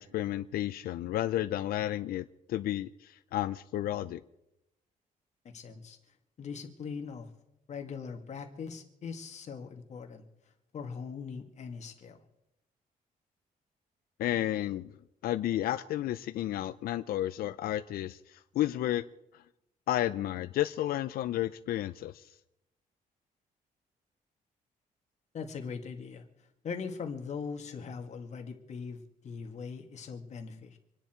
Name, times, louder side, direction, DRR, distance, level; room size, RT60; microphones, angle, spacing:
voice 1, 0.0-4.2 14.2-14.9 15.2-19.0 19.3-19.4 19.9-22.3, left 13 dB, 75° left, 10 dB, 0.5 m, -32 dB
voice 2, 5.4-6.0 6.4-7.3 7.7-10.2 10.7-12.2 25.3-26.2 26.6-30.8, left 5 dB, 50° left, 4 dB, 2.1 m, -40 dB
27.0 x 10.0 x 4.5 m, 0.84 s
cardioid pair, 140°, 15 cm